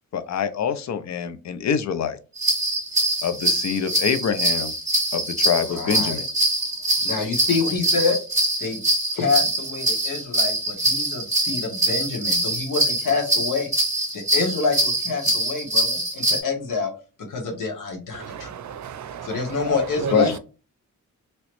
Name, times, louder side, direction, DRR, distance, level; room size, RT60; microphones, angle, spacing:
voice 1, 0.1-2.2 3.2-4.7 5.1-6.3 19.7-19.8 20.1-20.4, left 7 dB, 60° left, 0.5 m, -25 dB
sound 1, 2.4-16.4, right 1 dB, 10° right, 1.6 m, -23 dB
voice 2, 5.6-6.2 7.0-8.1 8.6-8.8 9.1-13.7 14.1-16.9 17.3-18.5 19.2-20.3, left 4 dB, 85° left, 1.3 m, -27 dB
voice 3, 18.1-20.4, right 7 dB, 65° right, 0.5 m, -33 dB
3.0 x 3.0 x 3.0 m
wide cardioid pair, 120°, 31 cm